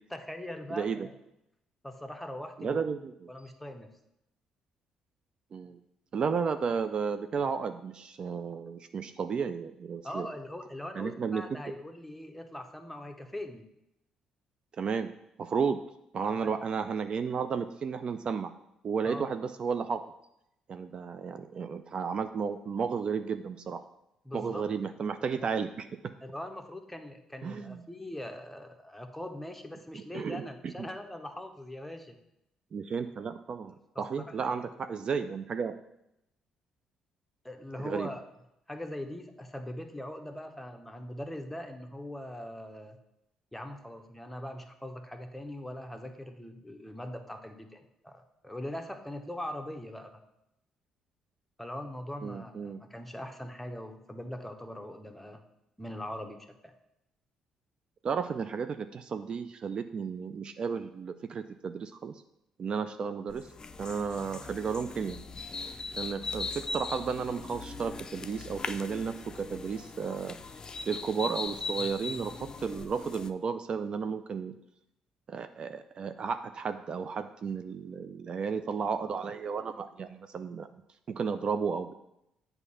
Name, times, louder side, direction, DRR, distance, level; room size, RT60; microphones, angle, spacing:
voice 1, 0.1-1.1 1.8-2.8 3.3-3.9 10.0-13.6 16.2-16.5 19.0-19.3 24.2-24.6 25.3-25.5 26.2-32.2 33.9-34.7 37.4-38.2 38.7-43.0 43.5-50.2 51.6-55.4 55.8-56.7, left 1 dB, 5° left, 5 dB, 0.8 m, -41 dB
voice 2, 0.7-1.1 2.6-3.1 5.5-5.8 6.1-10.3 10.9-11.6 14.8-15.1 15.4-15.8 16.1-18.5 18.8-20.0 20.7-23.8 24.3-25.9 27.4-27.8 29.9-30.9 32.7-35.7 37.8-38.1 52.2-52.8 58.0-62.1 62.6-63.5 63.8-65.2 66.0-70.4 70.9-72.3 72.6-74.5 75.3-80.7 81.1-81.9, right 6 dB, 50° right, 9 dB, 0.3 m, -33 dB
sound 1, 63.3-73.3, left 4 dB, 35° left, 0.4 m, -40 dB
7.9 x 2.7 x 5.6 m, 0.84 s
hypercardioid pair, 55°, 2 cm